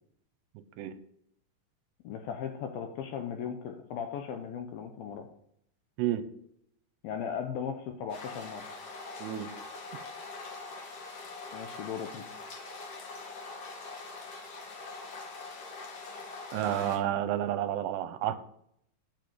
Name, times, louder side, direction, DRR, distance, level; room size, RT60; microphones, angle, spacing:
voice 1, 2.0-5.3 7.0-8.6 11.5-12.3, left 7 dB, 80° left, 5 dB, 2.2 m, -37 dB
sound 1, 8.1-17.0, left 3 dB, 55° left, 1.7 m, -43 dB
voice 2, 16.5-18.4, right 11 dB, 80° right, 12 dB, 2.7 m, -30 dB
8.9 x 5.1 x 7.7 m, 0.71 s
omnidirectional pair, 5.0 m